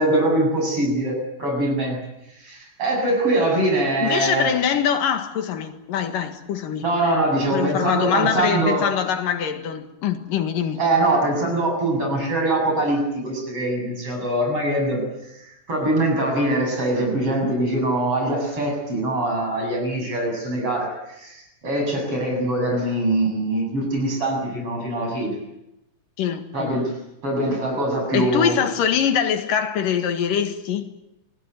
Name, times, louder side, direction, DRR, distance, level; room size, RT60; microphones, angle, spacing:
voice 1, 0.0-2.0 2.4-4.5 6.8-8.8 10.8-15.0 15.7-25.3 26.5-26.9 27.2-28.6, right 1 dB, 40° right, 8.8 m, -23 dB
voice 2, 4.0-6.9 7.5-10.8 26.2-26.8 28.1-30.9, left 8 dB, 80° left, 3.4 m, -23 dB
28.5 x 19.5 x 9.2 m
omnidirectional pair, 3.8 m